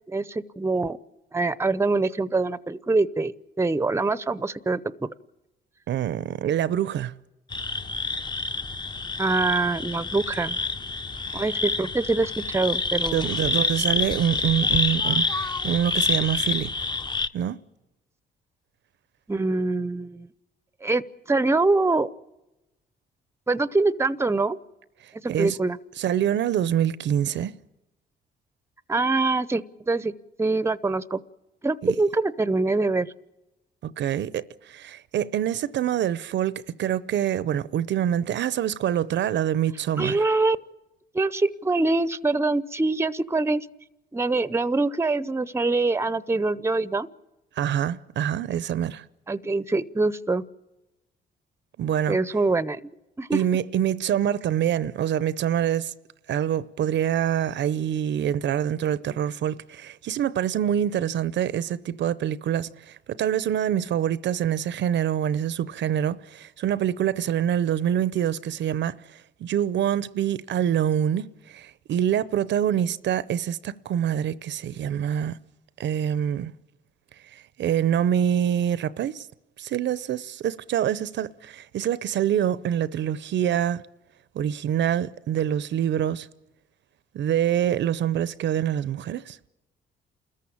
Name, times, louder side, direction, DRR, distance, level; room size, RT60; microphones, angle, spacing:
voice 1, 0.1-1.0 1.3-5.1 9.2-10.6 11.3-13.3 19.3-20.3 20.8-22.1 23.5-24.6 25.2-25.8 28.9-30.1 30.4-31.2 31.6-33.1 40.0-40.6 41.1-43.7 44.1-47.1 49.3-50.4 52.1-52.9 53.2-53.4, right 3 dB, 15° right, 0.7 m, -24 dB
voice 2, 5.9-7.2 13.1-16.7 17.3-17.6 25.3-25.6 26.0-27.5 31.8-31.9 33.8-40.2 47.6-49.0 51.8-52.2 53.3-55.9 56.3-75.4 75.8-76.5 77.3-79.3 79.6-83.8 84.3-86.3 87.1-89.4, right 10 dB, 65° right, 0.7 m, -25 dB
sound 1, 7.5-17.3, left 3 dB, 20° left, 0.8 m, -27 dB
29.0 x 14.0 x 8.7 m
cardioid pair, 90°, 20 cm